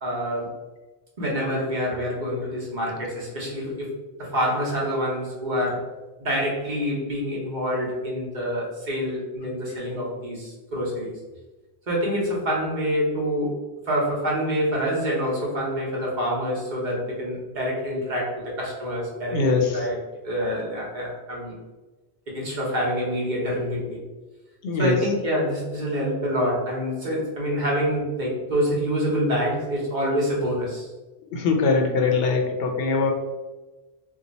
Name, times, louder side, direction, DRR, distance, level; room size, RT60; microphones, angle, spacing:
voice 1, 0.0-0.5 1.2-3.9 4.2-5.8 6.2-11.1 11.9-13.6 13.9-20.0 20.2-21.6 22.3-24.0 24.8-30.9, equal, 45° right, -4 dB, 1.1 m, -26 dB
voice 2, 19.3-19.9 24.6-25.1 31.3-33.1, left 4 dB, 70° left, 2 dB, 0.7 m, -22 dB
2.7 x 2.4 x 3.9 m, 1.2 s
omnidirectional pair, 1.1 m